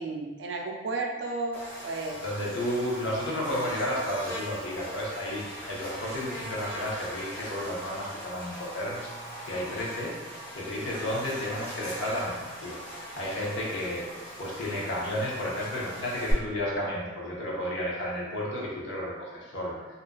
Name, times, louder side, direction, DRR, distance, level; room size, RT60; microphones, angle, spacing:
voice 1, 0.0-2.2, right 3 dB, 70° right, 2 dB, 0.3 m, -33 dB
Buzz, 1.5-16.3, equal, 10° left, 0.5 m, -41 dB
voice 2, 2.2-9.1 9.4-12.8 13.2-14.1 14.4-20.0, left 1 dB, 85° left, -5 dB, 0.7 m, -32 dB
2.4 x 2.3 x 2.2 m, 1.3 s
head